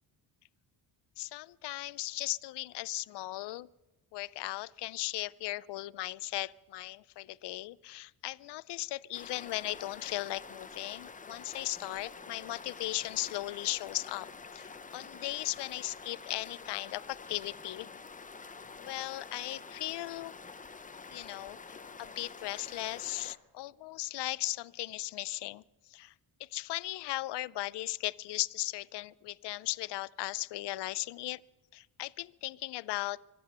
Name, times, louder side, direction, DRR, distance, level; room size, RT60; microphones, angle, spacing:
voice 1, 1.2-3.7 4.1-17.9 18.8-20.3 21.1-26.1 26.4-31.4 31.7-33.2, left 17 dB, 65° left, 20 dB, 0.5 m, -37 dB
sound 1, 9.1-23.4, left 4 dB, 20° left, 0.7 m, -48 dB
24.5 x 8.6 x 6.7 m, 1.0 s
cardioid pair, 120°, 44 cm